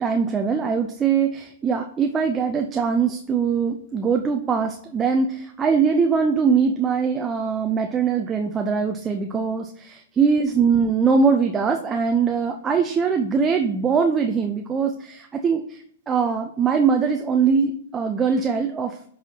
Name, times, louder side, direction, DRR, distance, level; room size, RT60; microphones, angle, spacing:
voice 1, 0.0-19.0, right 5 dB, 20° right, 4 dB, 0.6 m, -22 dB
12.5 x 4.1 x 2.9 m, 0.63 s
hypercardioid pair, 110°, 0 cm